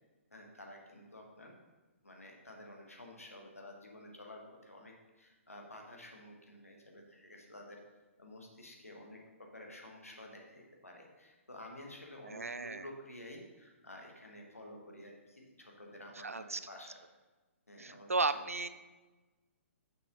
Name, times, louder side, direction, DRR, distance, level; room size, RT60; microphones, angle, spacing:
voice 1, 0.3-1.5 2.0-7.8 8.2-17.0 17.7-18.4, left 1 dB, 85° left, 1 dB, 1.4 m, -51 dB
voice 2, 12.3-12.9 16.2-16.6 17.8-18.7, right 3 dB, 80° right, 13 dB, 0.4 m, -35 dB
6.1 x 6.1 x 3.8 m, 1.2 s
figure-of-eight pair, 125°, 8 cm